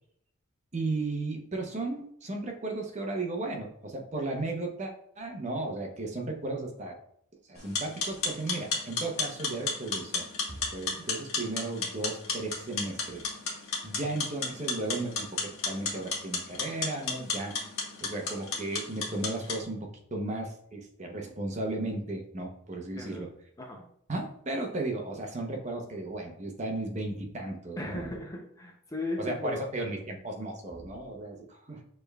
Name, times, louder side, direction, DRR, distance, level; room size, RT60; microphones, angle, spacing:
voice 1, 0.7-7.0 7.5-13.2 13.8-17.6 18.0-23.3 24.1-28.2 29.2-31.8, right 2 dB, 35° right, 2 dB, 0.7 m, -35 dB
sound 1, 7.6-19.6, left 4 dB, 85° left, 1.3 m, -34 dB
voice 2, 22.9-23.3 23.6-23.9 27.8-29.6, left 2 dB, 15° left, 1 dB, 0.5 m, -37 dB
6.7 x 3.3 x 2.2 m, 0.68 s
head